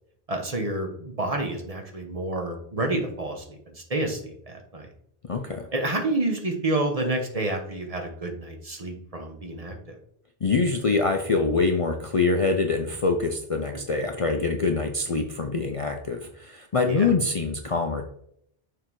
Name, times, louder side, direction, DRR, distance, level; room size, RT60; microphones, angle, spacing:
voice 1, 0.3-4.9 5.7-10.0 16.9-17.1, right 2 dB, 35° right, 3 dB, 1.0 m, -29 dB
voice 2, 5.2-5.7 10.4-18.0, left 4 dB, 40° left, 4 dB, 0.5 m, -25 dB
6.6 x 3.7 x 4.6 m, 0.71 s
omnidirectional pair, 1.1 m